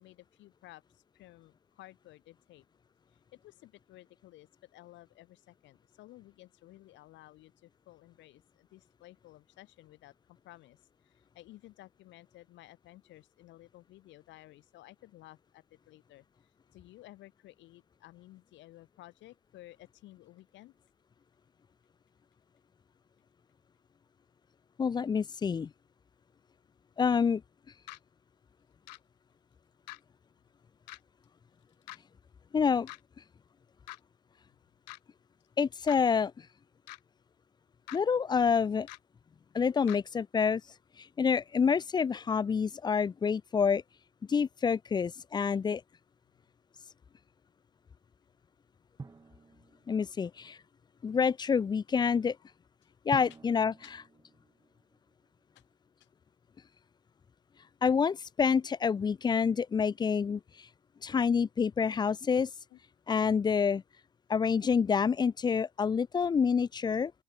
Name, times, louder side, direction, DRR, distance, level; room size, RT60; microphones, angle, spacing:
voice 1, 0.0-2.7 3.3-10.8 11.0-16.2 16.7-20.8 34.5-34.6 53.8-53.9 55.5-55.6 62.7-62.8, left 16 dB, 60° left, 2.1 m, -55 dB
voice 2, 24.8-25.7 27.0-27.4 32.5-32.9 35.6-36.3 37.9-38.9 39.5-40.6 41.0-43.8 44.3-45.8 49.9-50.6 51.0-52.4 53.1-53.7 57.8-60.7 61.0-62.5 63.1-63.8 64.3-67.1, left 6 dB, 20° left, 0.5 m, -27 dB
sound 1, 27.9-28.0 28.9-29.0 29.9-30.0 30.9-31.0 31.9-32.0 32.9-33.0 33.9-34.0 34.9-35.0 35.9-36.0 36.9-37.0 37.9-38.0 38.9-39.0 39.9-40.0, left 21 dB, 90° left, 1.1 m, -44 dB
Drum, 49.0-50.5 53.1-55.3, right 4 dB, 15° right, 0.9 m, -48 dB
open air
supercardioid pair, 90°, 21 cm